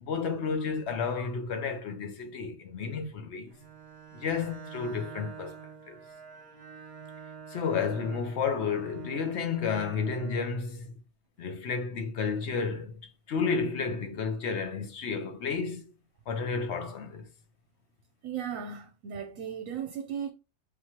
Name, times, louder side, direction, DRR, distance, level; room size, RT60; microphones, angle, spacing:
voice 1, 0.0-3.5 4.1-5.6 5.9-6.0 7.5-10.9 11.4-13.0 13.3-15.9 16.3-17.3, left 5 dB, 55° left, 0.9 m, -31 dB
Bowed string instrument, 3.5-10.6, right 6 dB, 50° right, 1.1 m, -47 dB
voice 2, 18.2-20.3, right 8 dB, 70° right, 1.0 m, -36 dB
4.7 x 3.0 x 2.9 m
omnidirectional pair, 1.5 m